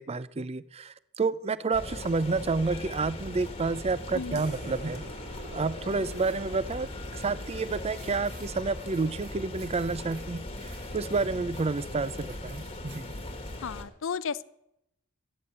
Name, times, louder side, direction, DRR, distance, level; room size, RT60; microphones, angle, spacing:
voice 1, 0.0-5.0 5.5-10.4 10.9-13.1, right 4 dB, 25° right, 17 dB, 0.5 m, -30 dB
sound 1, 1.7-13.8, left 1 dB, 25° left, 1.5 m, -39 dB
sound 2, 2.7-3.1 4.3-4.5 5.8-13.6, right 3 dB, 60° right, 5.1 m, -57 dB
voice 2, 4.1-4.4 13.6-14.4, left 6 dB, 60° left, 17 dB, 0.5 m, -33 dB
sound 3, 4.3-9.2, right 1 dB, 80° right, 3.6 m, -48 dB
14.0 x 8.6 x 8.0 m, 0.81 s
head